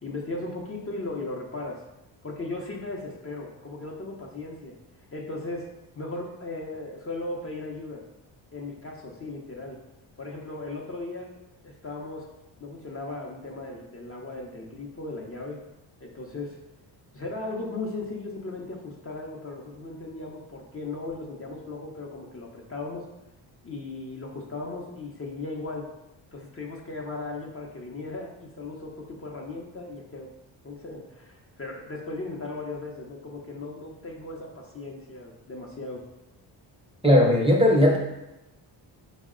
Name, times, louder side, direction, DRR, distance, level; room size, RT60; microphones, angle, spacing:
voice 1, 0.0-1.8 2.2-4.7 5.1-5.7 5.9-8.0 8.5-9.8 10.2-11.3 11.6-12.3 12.6-15.6 16.0-16.6 17.1-23.1 23.6-25.9 26.3-30.3 30.6-36.0, left 2 dB, 30° left, -1 dB, 0.6 m, -37 dB
voice 2, 37.0-38.0, left 1 dB, 10° right, -2 dB, 0.6 m, -18 dB
4.5 x 2.1 x 3.6 m, 0.96 s
cardioid pair, 80°, 47 cm